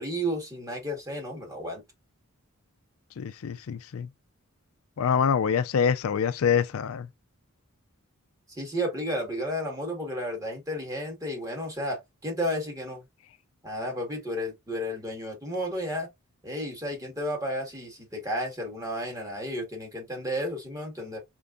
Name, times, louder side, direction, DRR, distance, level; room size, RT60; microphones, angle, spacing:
voice 1, 0.0-1.8 8.5-13.0 13.6-16.1 16.4-21.2, equal, 15° right, 1.7 m, -32 dB
voice 2, 3.2-4.1 5.0-7.1, left 7 dB, 75° left, 0.4 m, -25 dB
4.5 x 3.6 x 2.5 m
head